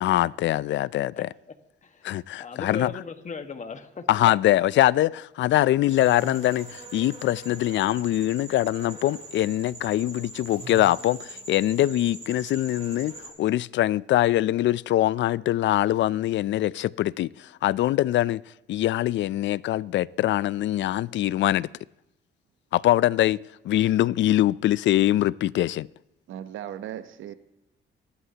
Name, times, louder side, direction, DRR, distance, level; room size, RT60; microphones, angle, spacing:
voice 1, 0.0-1.3 2.0-2.9 4.1-13.1 13.4-18.4 18.7-21.7 22.7-25.9, left 14 dB, 70° left, 0.4 m, -23 dB
voice 2, 2.4-4.1, left 4 dB, 40° left, 1.5 m, -37 dB
sound 1, 5.9-13.3, right 2 dB, 35° right, 3.7 m, -42 dB
voice 3, 26.3-27.3, right 11 dB, 80° right, 0.9 m, -37 dB
24.5 x 11.5 x 2.9 m
cardioid pair, 90°, 20 cm